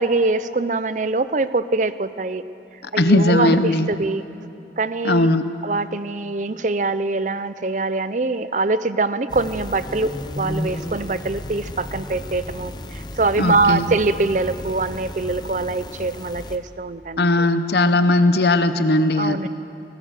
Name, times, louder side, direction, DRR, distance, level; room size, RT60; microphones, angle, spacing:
voice 1, 0.0-2.4 2.9-4.2 4.8-5.3 5.6-10.1 10.4-17.4 19.2-19.5, right 3 dB, 45° right, 13 dB, 0.6 m, -23 dB
voice 2, 3.0-3.9 5.0-5.4 13.4-13.8 17.2-19.5, left 2 dB, 65° left, 10 dB, 0.9 m, -18 dB
sound 1, 9.3-16.6, left 1 dB, 25° left, 0.8 m, -33 dB
21.5 x 19.0 x 6.6 m, 2.8 s
head